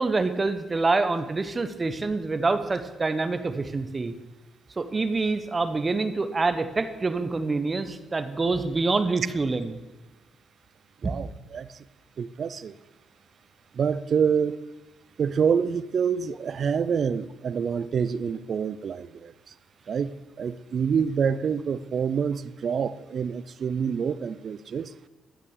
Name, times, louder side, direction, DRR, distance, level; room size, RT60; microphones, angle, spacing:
voice 1, 0.0-4.1 4.8-9.8 11.0-11.1, right 3 dB, 25° right, 10 dB, 1.0 m, -26 dB
voice 2, 11.0-11.7 12.2-12.7 13.7-14.6 15.2-19.3 19.9-24.9, right 6 dB, 55° right, 16 dB, 0.5 m, -27 dB
11.5 x 7.4 x 6.6 m, 1.1 s
cardioid pair, 90°, 0 cm